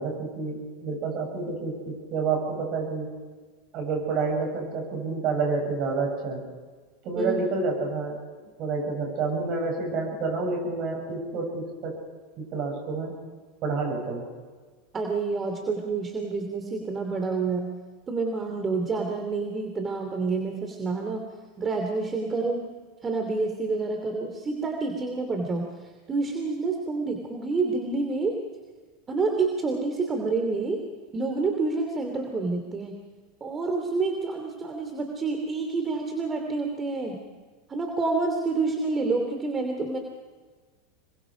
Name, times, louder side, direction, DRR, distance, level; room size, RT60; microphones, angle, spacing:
voice 1, 0.0-3.1 3.7-6.4 7.0-12.0 12.4-13.1 13.6-14.2, right 4 dB, 45° right, 2 dB, 8.0 m, -29 dB
voice 2, 7.2-7.6 14.9-17.7 18.1-21.3 21.6-22.6 23.0-25.6 26.1-28.4 29.1-30.9 31.1-32.9 33.4-37.2 37.7-40.0, right 3 dB, 25° right, 3 dB, 2.7 m, -28 dB
26.5 x 22.5 x 5.1 m, 1.4 s
hypercardioid pair, 95°, 0 cm